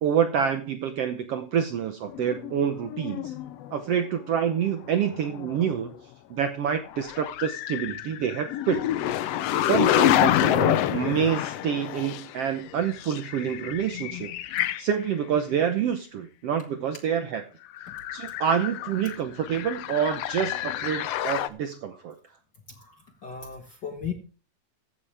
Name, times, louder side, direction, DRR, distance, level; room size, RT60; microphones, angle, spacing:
voice 1, 0.0-3.3 3.7-5.9 6.3-8.8 9.1-9.3 9.7-14.3 14.8-17.4 18.1-22.1, right 8 dB, 70° right, 8 dB, 1.5 m, -27 dB
sound 1, 2.1-3.8 5.0-5.9 6.9-14.8 15.3-15.4 17.8-21.5, left 12 dB, 90° left, 1.4 m, -28 dB
voice 2, 22.7-24.1, left 7 dB, 45° left, 5 dB, 1.5 m, -37 dB
15.0 x 10.0 x 3.4 m, 0.37 s
omnidirectional pair, 3.7 m